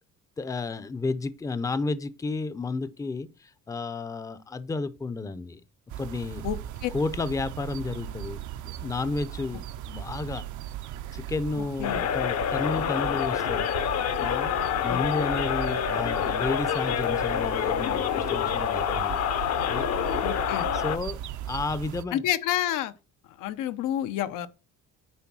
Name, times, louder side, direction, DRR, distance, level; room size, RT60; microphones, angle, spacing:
voice 1, 0.4-5.6 6.0-6.5 6.9-10.5 11.1-13.7 14.2-14.5 14.8-19.9 20.7-21.2 21.5-22.3, left 3 dB, 10° left, 0.5 m, -32 dB
sound 1, 5.9-22.0, right 11 dB, 70° right, 0.7 m, -38 dB
sound 2, 11.8-21.0, left 9 dB, 55° left, 0.8 m, -27 dB
voice 2, 20.2-20.7 22.1-22.9 23.4-24.5, left 12 dB, 90° left, 0.9 m, -28 dB
9.8 x 3.5 x 6.0 m
cardioid pair, 145°, 31 cm